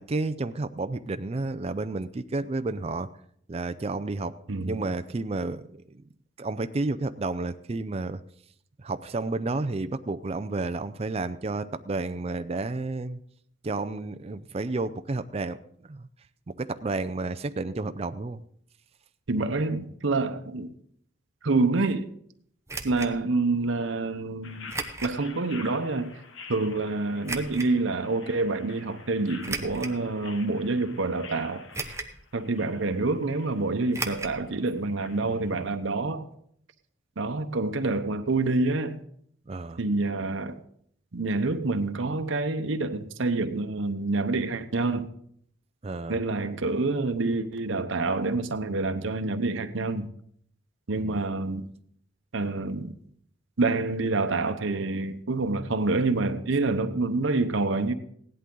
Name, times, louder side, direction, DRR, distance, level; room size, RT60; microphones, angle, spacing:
voice 1, 0.0-3.1 3.5-6.0 6.4-8.2 8.8-13.2 13.6-15.6 15.9-16.1 16.5-18.4 39.5-39.8 45.8-46.2 51.0-51.2, right 3 dB, 30° right, 0.5 m, -31 dB
voice 2, 19.3-20.7 21.4-22.1 22.8-24.7 25.0-26.2 26.5-31.6 32.3-36.3 37.2-39.0 39.8-40.6 41.1-45.1 46.1-50.1 50.9-51.7 52.3-52.9 53.6-57.9, right 3 dB, 80° right, 0.9 m, -27 dB
sound 1, 22.7-23.1 24.7-25.2 25.7-25.8 27.2-27.7 29.4-30.0 30.6-30.7 31.7-32.2 32.5-32.6 33.9-34.4 34.7-34.8 35.0-35.1, right 3 dB, 15° right, 0.9 m, -34 dB
sound 2, 24.4-35.7, left 5 dB, 85° left, 1.2 m, -48 dB
16.5 x 11.0 x 3.8 m
head